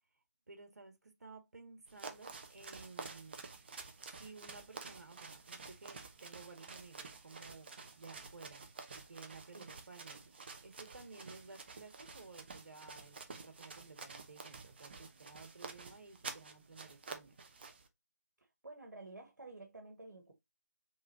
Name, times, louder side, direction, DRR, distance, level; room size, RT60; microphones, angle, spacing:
voice 1, 0.5-3.7 4.1-8.6 8.9-17.4, right 3 dB, 65° right, 1.7 m, -55 dB
sound 1, 1.9-17.9, right 4 dB, 35° right, 0.8 m, -50 dB
voice 2, 18.4-20.3, right 2 dB, 85° right, 1.5 m, -52 dB
4.8 x 3.8 x 2.6 m
figure-of-eight pair, 160°, 9 cm